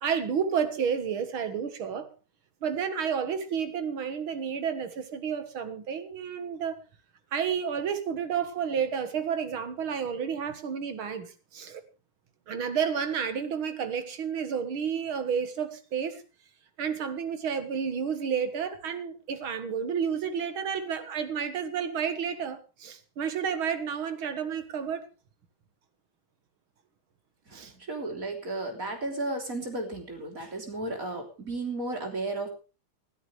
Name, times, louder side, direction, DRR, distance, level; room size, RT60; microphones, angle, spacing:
voice 1, 0.0-2.1 2.6-6.8 7.3-11.8 12.5-16.2 16.8-25.1 27.5-27.7, right 7 dB, 75° right, 10 dB, 2.4 m, -31 dB
voice 2, 27.5-32.5, right 2 dB, 40° right, 3 dB, 3.9 m, -34 dB
20.0 x 13.0 x 3.4 m, 0.33 s
omnidirectional pair, 2.3 m